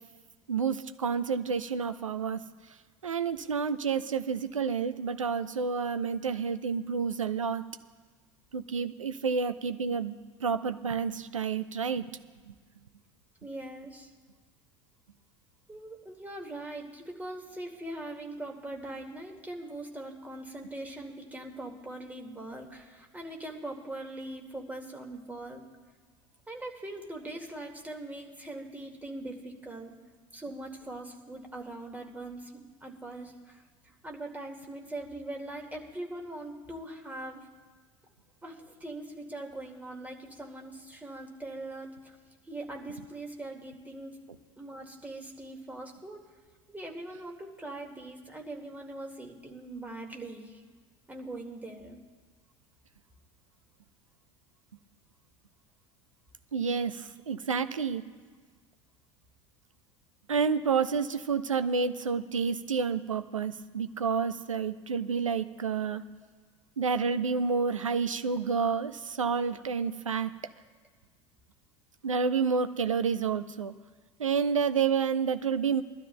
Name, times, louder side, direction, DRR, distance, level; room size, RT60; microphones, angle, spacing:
voice 1, 0.5-2.4 3.0-7.6 8.5-10.1 10.4-12.2 12.5-12.6 56.5-58.0 60.3-66.0 66.8-70.3 72.0-73.7 74.2-75.8, right 5 dB, 80° right, 11 dB, 0.6 m, -29 dB
voice 2, 13.4-14.1 15.7-25.6 26.5-29.9 30.3-32.5 32.8-37.5 38.4-42.2 42.5-44.2 44.6-46.2 46.7-50.6 51.1-52.0, right 1 dB, 10° right, 1 dB, 2.1 m, -41 dB
23.5 x 12.0 x 2.3 m, 1.4 s
figure-of-eight pair, 70°, 16 cm